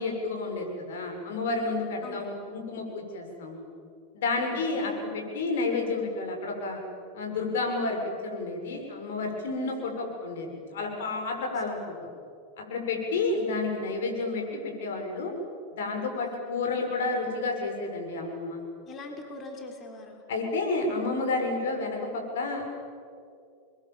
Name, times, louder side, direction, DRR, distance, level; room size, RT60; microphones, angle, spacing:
voice 1, 0.0-3.6 4.1-6.8 7.1-11.9 12.7-15.3 15.7-18.6 20.3-22.7, left 3 dB, 85° left, 2 dB, 6.6 m, -30 dB
voice 2, 2.0-2.4 4.4-4.9 9.6-9.8 11.4-11.5 13.1-13.3 16.2-16.4 18.9-20.2, left 2 dB, 30° left, 3 dB, 3.6 m, -43 dB
29.0 x 22.5 x 7.4 m, 2.4 s
supercardioid pair, 125°, 0 cm